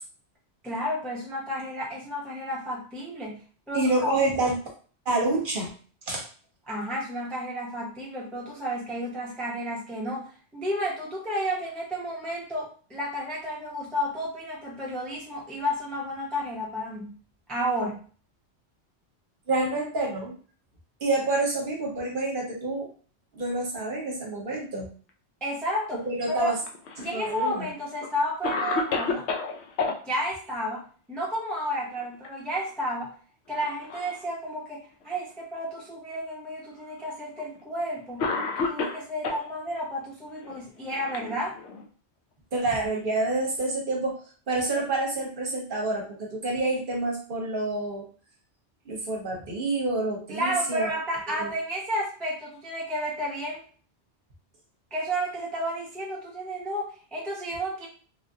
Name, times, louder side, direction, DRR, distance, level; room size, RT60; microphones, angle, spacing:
voice 1, 0.6-4.2 6.7-17.1 17.5-18.0 25.4-26.5 27.0-29.3 30.0-33.1 33.5-38.3 38.6-41.6 50.3-53.6 54.9-57.9, equal, ahead, -3 dB, 0.5 m, -32 dB
voice 2, 3.7-4.6 5.1-5.7 6.1-6.3 19.5-20.3 21.0-22.9 23.3-24.9 26.0-26.6 27.0-27.7 42.5-44.2 44.5-48.0 48.9-50.9 51.3-51.5, right 2 dB, 55° right, -1 dB, 0.9 m, -28 dB
Cough, 26.6-27.5 28.0-28.1 28.4-30.0 31.8-32.3 32.6-32.7 33.5-34.2 35.0-35.1 36.2-36.3 37.4-37.6 38.2-39.5 40.4-41.9, left 4 dB, 75° left, 0.8 m, -31 dB
3.1 x 2.4 x 2.6 m, 0.41 s
omnidirectional pair, 1.2 m